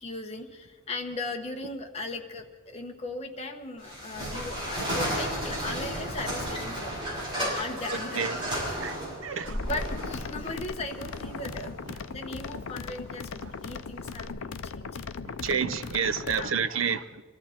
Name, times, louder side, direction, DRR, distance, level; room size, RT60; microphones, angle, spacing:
voice 1, 0.0-7.0 7.4-8.2 9.2-11.8 12.0-15.1 16.2-16.6, left 2 dB, 30° left, 1.1 m, -38 dB
sound 1, 3.8-14.3, equal, 25° right, 5.9 m, -34 dB
voice 2, 7.9-8.4 8.8-9.6 13.6-13.7 15.2-17.2, right 6 dB, 70° right, 0.7 m, -30 dB
sound 2, 9.5-16.5, left 5 dB, 85° left, 0.6 m, -38 dB
23.5 x 13.5 x 4.4 m
head